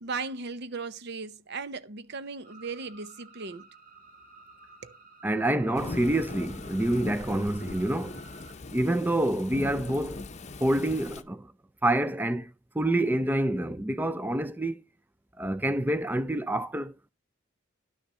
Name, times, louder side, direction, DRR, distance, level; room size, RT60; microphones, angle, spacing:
voice 1, 0.0-3.7 4.8-5.0, right 4 dB, 60° right, 0.8 m, -37 dB
sound 1, 2.4-8.5, right 3 dB, 45° right, 2.6 m, -53 dB
voice 2, 5.2-8.2 8.7-10.2 10.6-11.5 11.8-12.5 12.8-14.8 15.4-16.9, right 1 dB, 10° right, 0.5 m, -27 dB
Thunderstorm / Rain, 5.8-11.2, left 2 dB, 35° left, 0.7 m, -40 dB
11.5 x 6.5 x 4.2 m
head